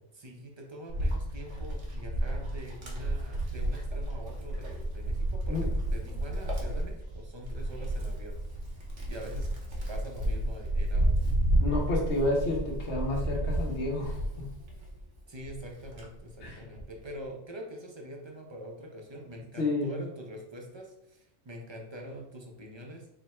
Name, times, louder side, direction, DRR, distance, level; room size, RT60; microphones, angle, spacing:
voice 1, 0.1-8.4 9.0-9.5 9.9-11.2 15.3-23.2, right 1 dB, 35° right, 1 dB, 0.5 m, -44 dB
Wind, 0.9-15.0 15.4-16.9, right 1 dB, 90° right, 1.3 m, -31 dB
voice 2, 11.6-14.5 16.4-16.6 19.6-20.0, left 2 dB, 70° left, -1 dB, 1.2 m, -30 dB
4.4 x 2.2 x 4.2 m, 0.82 s
omnidirectional pair, 1.2 m